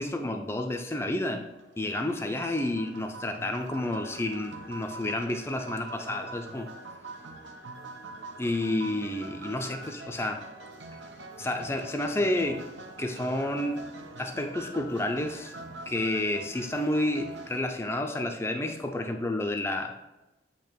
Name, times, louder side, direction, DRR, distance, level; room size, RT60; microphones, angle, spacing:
voice 1, 0.0-1.4 1.8-6.7 8.4-10.4 11.4-12.6 13.0-13.8 14.2-15.5 15.9-19.9, left 1 dB, 15° left, 4 dB, 0.5 m, -30 dB
sound 1, 1.4-17.6, right 2 dB, 85° right, 0.7 m, -44 dB
8.6 x 2.9 x 4.5 m, 1.0 s
head